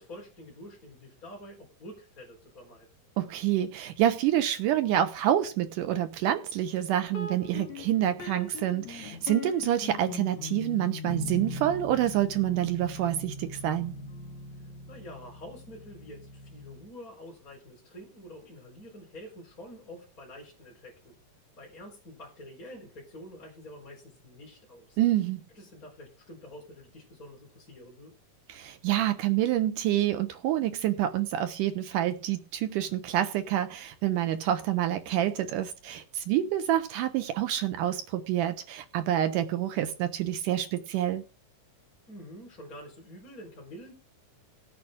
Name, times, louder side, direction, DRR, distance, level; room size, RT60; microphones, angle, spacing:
voice 1, 0.0-2.9 14.5-21.1 21.6-25.0 25.5-28.1 42.1-43.9, equal, 25° left, 4.4 m, -47 dB
voice 2, 3.2-14.0 25.0-25.4 28.5-41.2, right 12 dB, 75° right, 2.3 m, -27 dB
sound 1, 7.1-16.9, left 3 dB, 60° left, 3.0 m, -40 dB
17.5 x 8.8 x 3.7 m
omnidirectional pair, 3.8 m